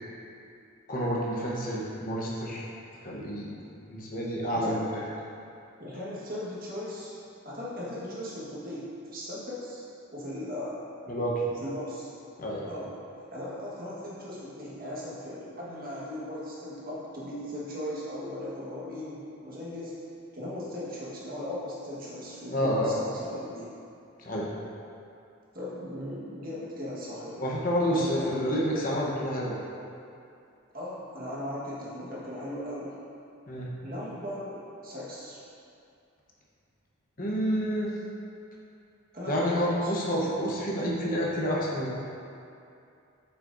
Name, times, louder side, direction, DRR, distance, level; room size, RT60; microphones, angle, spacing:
voice 1, 0.9-2.6 3.0-3.5 3.9-4.9 11.1-11.4 12.4-12.7 22.5-23.0 24.2-24.5 27.4-29.5 33.5-33.7 37.2-37.9 39.3-41.9, equal, 40° left, -4 dB, 1.0 m, -29 dB
voice 2, 5.8-7.1 7.4-9.8 10.1-10.8 11.5-12.1 12.6-12.9 13.3-19.9 20.3-23.7 25.5-27.5 27.8-28.6 30.7-32.9 33.8-35.4 39.1-39.9, left 1 dB, 45° right, -7 dB, 1.5 m, -38 dB
7.4 x 5.9 x 2.6 m, 2.6 s
head